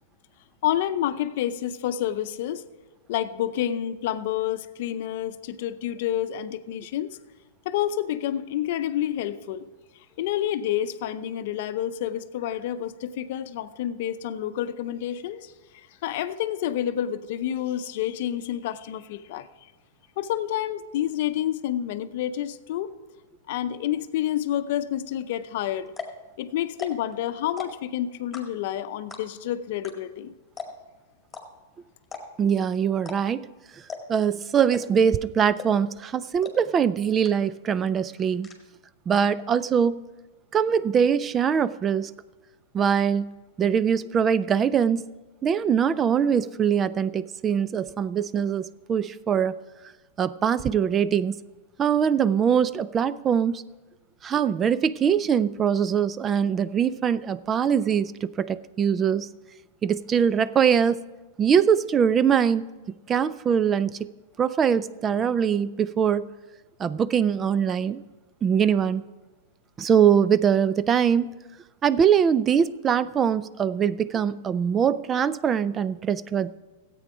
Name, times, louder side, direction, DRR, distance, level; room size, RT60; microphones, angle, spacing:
voice 1, 0.6-2.6 3.1-7.1 7.6-9.7 10.2-19.5 20.2-22.9 23.5-25.9 26.4-30.3, left 11 dB, 60° left, 11 dB, 0.6 m, -29 dB
sound 1, 25.4-25.5 25.9-26.2 26.7-27.1 27.4-27.9 28.3-28.7 29.1-29.4 29.8-29.9 30.2-30.3 30.6-30.9 31.3-31.4 32.0-32.5 33.0-33.2 33.4-33.5 33.9-34.2 34.7-35.1 35.6-35.9 36.4-36.5 36.9-37.0 37.2-37.7 37.9-38.5, left 5 dB, 15° left, 2.0 m, -37 dB
voice 2, 32.4-33.5 34.1-38.5 39.1-40.0 40.5-42.1 42.7-43.3 43.6-45.0 45.4-49.6 50.2-51.4 51.8-53.6 54.2-59.3 59.8-61.0 61.4-62.7 63.1-64.1 64.4-66.3 66.8-68.0 68.4-69.0 69.8-71.3 71.8-76.5, right 7 dB, 25° right, 17 dB, 0.3 m, -22 dB
13.5 x 8.5 x 5.0 m, 1.2 s
hypercardioid pair, 120°, 0 cm